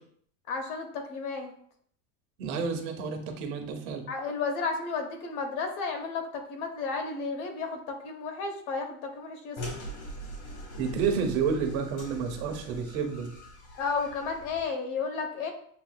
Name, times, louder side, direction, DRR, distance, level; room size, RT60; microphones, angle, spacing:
voice 1, 0.5-1.5 4.1-9.6 13.8-15.5, left 4 dB, 65° left, 5 dB, 0.9 m, -33 dB
voice 2, 2.4-4.0 10.8-13.3, right 6 dB, 60° right, 5 dB, 0.9 m, -30 dB
sound 1, 9.6-14.6, equal, 80° left, 1.5 m, -42 dB
6.8 x 2.3 x 2.2 m, 0.63 s
supercardioid pair, 165°, 47 cm